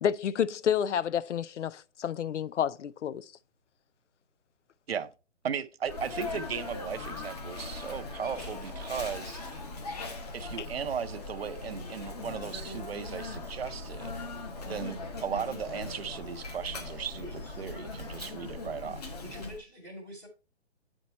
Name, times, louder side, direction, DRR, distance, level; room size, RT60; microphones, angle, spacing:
voice 1, 0.0-3.3 10.6-10.7, left 8 dB, 80° left, 0.5 m, -30 dB
voice 2, 5.4-9.5 10.3-14.2 14.7-17.2 17.6-19.1, right 7 dB, 60° right, 0.6 m, -36 dB
Sneeze, 5.8-19.6, left 2 dB, 35° left, 1.2 m, -40 dB
voice 3, 19.2-20.3, equal, 5° left, 0.8 m, -44 dB
8.6 x 4.5 x 4.2 m
hypercardioid pair, 170°, 35 cm